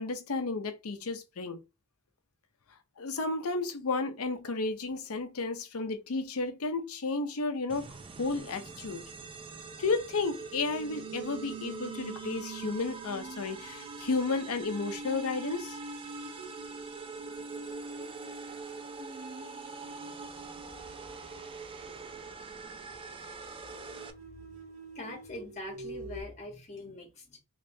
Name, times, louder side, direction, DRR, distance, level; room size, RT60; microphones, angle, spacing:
voice 1, 0.0-1.6 3.0-9.0 9.8-15.8, left 3 dB, 70° left, 0.7 m, -32 dB
sound 1, 7.7-24.1, right 4 dB, 25° right, 0.4 m, -44 dB
sound 2, 10.7-21.7 23.5-26.2, right 3 dB, 65° right, 1.6 m, -46 dB
voice 2, 24.9-27.4, left 2 dB, 30° left, 1.1 m, -43 dB
3.5 x 3.2 x 2.7 m
head